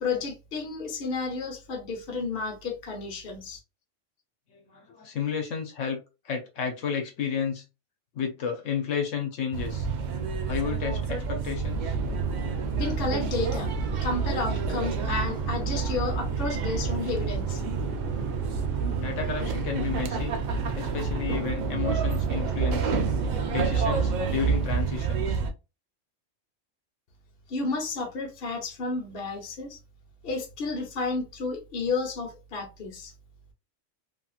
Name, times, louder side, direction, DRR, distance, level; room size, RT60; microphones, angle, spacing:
voice 1, 0.0-3.6 12.7-13.7 14.0-17.6 27.5-29.8 30.2-33.1, left 3 dB, 50° left, 0.9 m, -31 dB
voice 2, 4.5-7.7 8.1-9.9 10.4-11.9 19.0-20.3 20.7-23.0 23.5-25.4, left 7 dB, 75° left, 1.1 m, -32 dB
sound 1, 9.5-25.5, right 5 dB, 90° right, 0.4 m, -29 dB
Chatter / Fixed-wing aircraft airplane, 11.4-24.9, right 4 dB, 65° right, 1.0 m, -38 dB
2.8 x 2.8 x 2.3 m
omnidirectional pair, 1.3 m